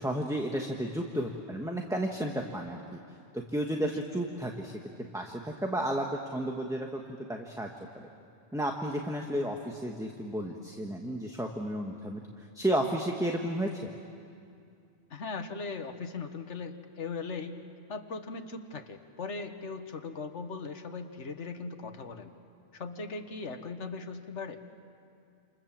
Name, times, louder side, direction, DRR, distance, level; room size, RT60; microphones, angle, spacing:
voice 1, 0.0-2.8 3.3-4.8 5.1-7.0 7.3-7.7 7.9-8.1 8.5-13.9, right 1 dB, 5° right, 1 dB, 1.3 m, -32 dB
voice 2, 15.1-17.6 17.9-22.3 22.7-24.6, left 4 dB, 90° left, 7 dB, 1.7 m, -39 dB
28.5 x 28.0 x 7.5 m, 2.4 s
omnidirectional pair, 1.2 m